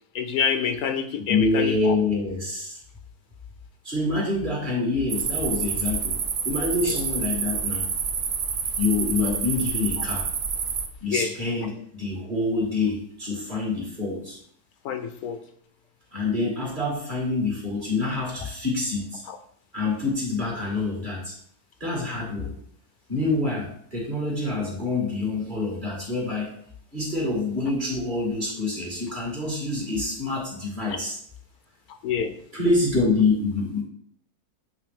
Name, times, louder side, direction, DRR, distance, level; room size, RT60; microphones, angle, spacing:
voice 1, 0.1-1.9 6.8-7.0 11.1-11.3 14.8-15.4 19.3-19.4 32.0-32.3, left 7 dB, 75° left, 8 dB, 1.0 m, -27 dB
voice 2, 1.3-2.8 3.8-6.2 6.5-7.9 8.8-10.3 11.0-14.4 16.1-19.2 19.7-21.4 21.8-22.5 23.1-26.5 26.9-31.2 32.5-33.8, left 3 dB, 30° right, -3 dB, 2.0 m, -26 dB
sound 1, 5.1-10.9, right 6 dB, 75° right, 0.5 m, -28 dB
8.1 x 3.3 x 3.5 m, 0.64 s
omnidirectional pair, 1.7 m